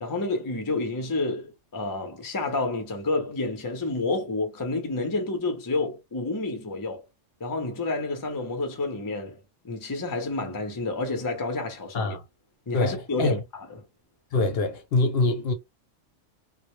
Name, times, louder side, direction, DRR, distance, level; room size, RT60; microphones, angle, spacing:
voice 1, 0.0-7.0 7.4-9.4 9.6-12.2 12.7-13.7, left 2 dB, 30° left, 0.3 m, -29 dB
voice 2, 12.7-13.4 14.3-15.5, left 2 dB, 60° left, 0.7 m, -24 dB
2.1 x 2.0 x 2.9 m
omnidirectional pair, 1.3 m